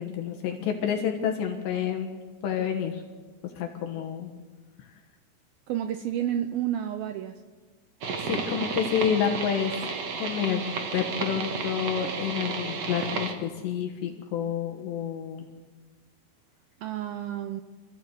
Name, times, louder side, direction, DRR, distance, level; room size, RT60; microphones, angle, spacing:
voice 1, 0.0-3.0 3.6-4.3 8.2-9.7 10.1-15.5, left 8 dB, 75° left, 3 dB, 3.5 m, -29 dB
voice 2, 5.7-7.4 16.8-17.6, right 11 dB, 85° right, 9 dB, 2.1 m, -30 dB
sound 1, 8.0-13.3, right 5 dB, 55° right, 2.0 m, -32 dB
26.5 x 15.0 x 8.2 m, 1.4 s
omnidirectional pair, 5.2 m